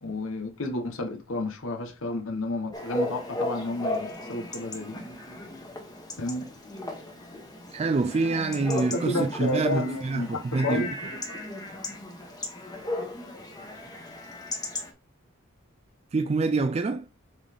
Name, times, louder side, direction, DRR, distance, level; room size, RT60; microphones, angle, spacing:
voice 1, 0.0-5.0 6.2-6.5 8.3-10.9 11.3-11.4 11.7-11.9, left 2 dB, 85° left, 1.1 m, -31 dB
Chatter / Bark / Livestock farm animals working animals, 2.7-14.9, left 1 dB, 20° left, 1.2 m, -36 dB
voice 2, 7.7-11.0 16.1-17.1, right 3 dB, 30° right, 0.3 m, -26 dB
7.1 x 4.0 x 3.5 m
head